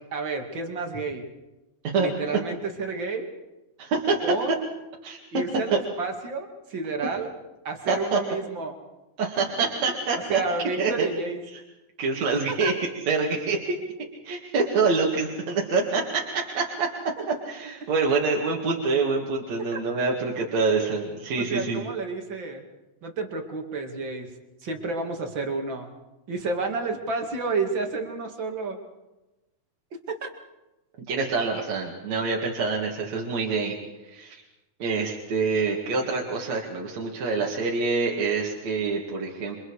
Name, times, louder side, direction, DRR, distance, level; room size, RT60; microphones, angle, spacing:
voice 1, 0.1-1.2 2.0-3.3 4.2-4.5 5.3-7.3 7.6-8.7 10.1-11.4 12.5-12.7 21.4-22.6 23.0-24.3 24.6-25.9 26.3-28.8 30.1-30.3, right 3 dB, 40° right, 3 dB, 2.9 m, -30 dB
voice 2, 3.8-4.2 5.0-5.2 7.9-8.2 9.2-10.4 10.8-11.1 12.0-12.7 13.1-13.8 14.2-16.9 17.5-21.8 31.1-33.8 34.0-34.4 34.8-39.6, right 4 dB, 65° right, -2 dB, 3.4 m, -26 dB
28.5 x 25.5 x 4.9 m, 1.0 s
omnidirectional pair, 3.5 m